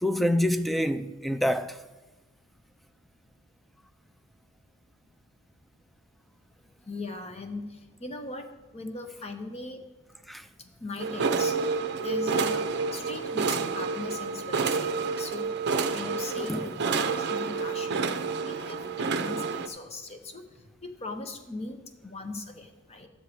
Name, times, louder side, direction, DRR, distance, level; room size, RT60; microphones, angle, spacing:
voice 1, 0.0-1.8 10.3-10.4 16.5-16.6, left 1 dB, ahead, 0.4 m, -26 dB
voice 2, 6.9-9.8 10.6-15.5 15.9-18.0 18.4-23.1, left 3 dB, 30° left, 1.0 m, -39 dB
sound 1, 11.0-19.7, right 4 dB, 55° right, 0.6 m, -29 dB
12.5 x 4.7 x 8.5 m
head